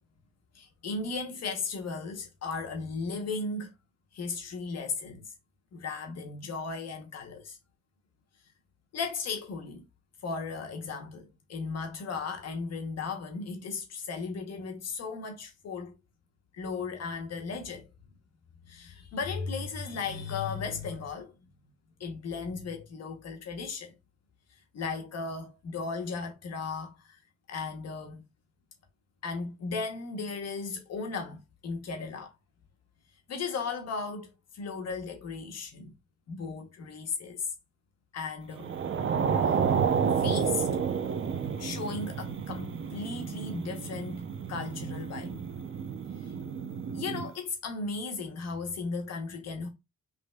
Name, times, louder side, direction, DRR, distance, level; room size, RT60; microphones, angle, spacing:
voice 1, 0.5-3.7 4.1-5.2 5.7-7.6 8.9-9.8 10.2-15.9 16.5-17.9 18.7-21.3 22.0-23.9 24.7-27.2 27.5-28.2 29.2-32.3 33.3-35.9 36.3-37.5 38.1-38.7 40.2-40.7 41.6-44.2 44.5-45.4 46.2-46.3 46.9-49.7, left 4 dB, 60° left, 0.9 m, -36 dB
sound 1, 38.6-47.3, right 6 dB, 40° right, 0.6 m, -30 dB
5.1 x 3.1 x 2.2 m
cardioid pair, 90°, 30 cm